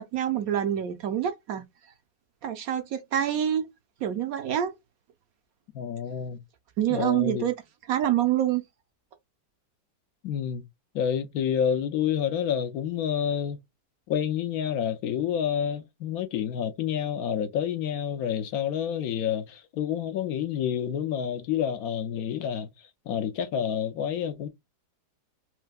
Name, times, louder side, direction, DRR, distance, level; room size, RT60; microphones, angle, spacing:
voice 1, 0.0-1.6 2.4-3.7 4.0-4.7 6.8-7.5 7.9-8.6, right 10 dB, 70° right, 0.9 m, -26 dB
voice 2, 5.7-6.4 6.9-7.4 10.2-10.6 10.9-13.6 14.1-24.5, left 8 dB, 70° left, 1.0 m, -29 dB
4.4 x 2.1 x 2.3 m
omnidirectional pair, 1.8 m